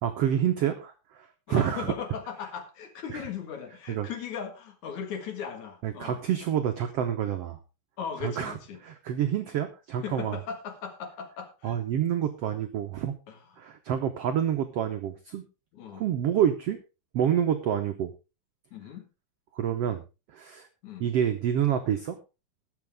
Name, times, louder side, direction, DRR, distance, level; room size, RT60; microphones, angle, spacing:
voice 1, 0.0-1.9 3.1-3.2 3.9-4.1 5.8-7.6 8.2-8.5 8.8-10.4 11.6-13.1 13.6-15.4 15.9-16.8 17.1-18.1 19.5-20.0 20.3-20.7 21.0-22.2, right 9 dB, 80° right, 6 dB, 1.3 m, -28 dB
voice 2, 1.5-6.2 8.0-8.8 10.0-11.8 13.3-13.4 15.7-16.0 18.7-19.1 20.8-21.0, left 7 dB, 60° left, 6 dB, 2.9 m, -38 dB
20.0 x 6.8 x 3.5 m, 0.29 s
omnidirectional pair, 4.0 m